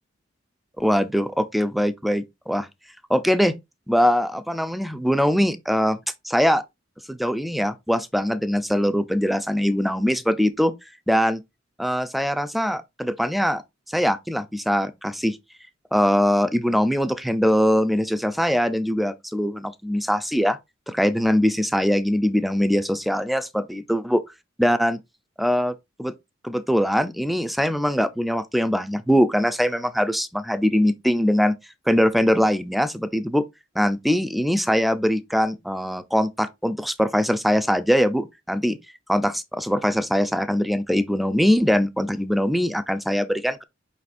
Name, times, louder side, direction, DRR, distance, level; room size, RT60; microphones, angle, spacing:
voice 1, 0.8-2.7 3.1-3.6 3.9-6.0 6.2-6.6 7.1-10.7 11.1-11.4 11.8-13.6 13.9-15.4 15.9-20.6 20.9-24.2 24.6-25.0 25.4-25.7 26.0-26.1 26.4-31.6 31.9-33.5 33.8-38.8 39.1-43.6, equal, ahead, 0.4 m, -22 dB
5.1 x 4.1 x 2.4 m
head